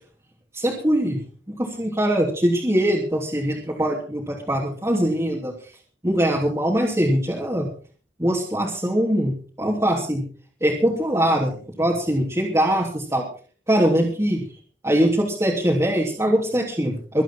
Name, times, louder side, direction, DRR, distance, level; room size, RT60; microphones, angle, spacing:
voice 1, 0.5-1.2 1.5-5.5 6.0-7.7 8.2-10.2 10.6-13.2 13.7-14.4 14.8-17.2, equal, 15° right, -4 dB, 3.0 m, -22 dB
24.0 x 9.0 x 4.5 m, 0.41 s
head